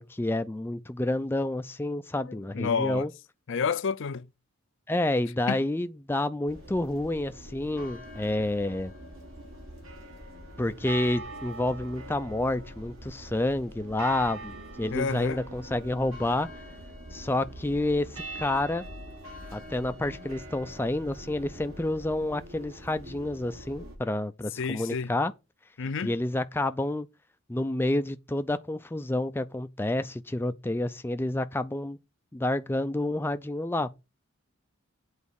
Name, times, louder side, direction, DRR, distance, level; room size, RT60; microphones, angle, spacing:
voice 1, 0.0-3.1 4.9-8.9 10.6-16.5 17.1-18.8 19.5-25.3 26.0-27.1 27.5-32.0 32.3-33.9, left 1 dB, 10° left, 0.4 m, -29 dB
voice 2, 2.2-3.1 3.5-4.3 5.5-5.6 14.9-15.4 23.8-23.9 24.6-25.1 25.8-26.1, left 5 dB, 65° left, 0.5 m, -30 dB
sound 1, 6.5-24.0, right 1 dB, 75° right, 4.1 m, -43 dB
8.4 x 4.1 x 6.9 m
head